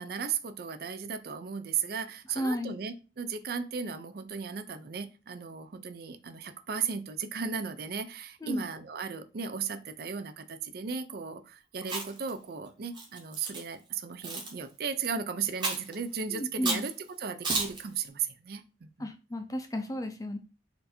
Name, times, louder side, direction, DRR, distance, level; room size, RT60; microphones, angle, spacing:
voice 1, 0.0-16.9 17.2-19.1, right 6 dB, 55° right, 0.4 m, -36 dB
voice 2, 2.3-2.8 8.4-8.6 16.3-16.8 19.0-20.4, equal, 20° left, 0.5 m, -33 dB
Chewing mastication, 11.8-12.3 12.9-13.6 14.2-14.5 15.6-15.9 16.6-16.9 17.4-17.8, right 3 dB, 25° right, 1.0 m, -32 dB
4.3 x 2.6 x 4.2 m
head